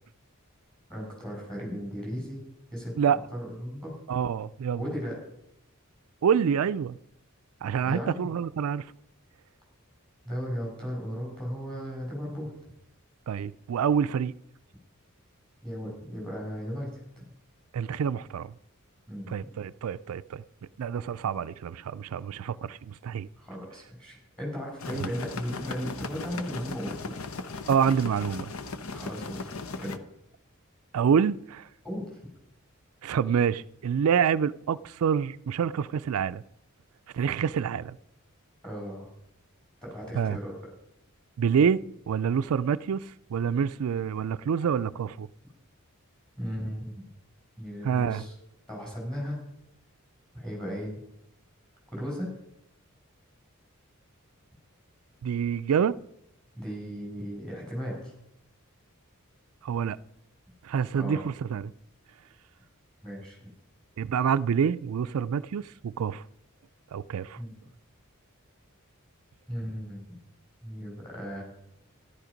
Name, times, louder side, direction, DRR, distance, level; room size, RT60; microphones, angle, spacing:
voice 1, 0.9-2.4 2.7-3.9 4.8-5.2 7.8-8.3 10.2-12.5 15.6-17.2 19.1-19.3 23.4-27.1 28.9-29.5 29.8-30.0 31.8-32.1 38.6-39.1 39.8-40.7 46.4-47.1 47.6-48.3 48.7-49.4 50.3-50.9 51.9-52.3 56.5-58.1 61.0-61.3 63.0-63.4 67.4-67.5 69.5-70.1 70.6-71.4, equal, 5° left, 6.3 m, -36 dB
voice 2, 4.1-4.8 6.2-7.0 7.6-8.9 13.3-14.3 17.7-18.5 19.3-20.4 20.8-23.3 24.9-25.1 27.7-28.5 30.9-31.7 33.0-36.4 37.1-38.0 40.2-40.4 41.4-45.3 47.8-48.2 55.2-56.0 59.6-60.0 60.6-61.7 64.0-66.2 66.9-67.4, right 7 dB, 85° right, 0.4 m, -27 dB
sound 1, 24.8-30.0, left 3 dB, 75° left, 0.9 m, -37 dB
13.5 x 11.5 x 5.1 m
head